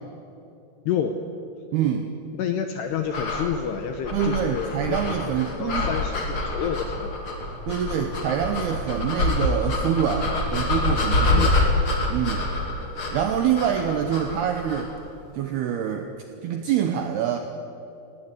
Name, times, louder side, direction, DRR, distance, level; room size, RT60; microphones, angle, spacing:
voice 1, 1.7-2.1 4.1-5.9 7.7-11.6 12.1-12.4 13.1-14.9 15.3-16.1 16.4-17.4, right 9 dB, 80° right, 5 dB, 2.3 m, -25 dB
voice 2, 2.4-5.2 5.6-7.1 11.3-11.8, left 8 dB, 80° left, 6 dB, 2.5 m, -29 dB
sound 1, 3.1-15.0, left 2 dB, 35° left, 2.4 m, -26 dB
19.0 x 16.5 x 9.8 m, 2.7 s
omnidirectional pair, 5.9 m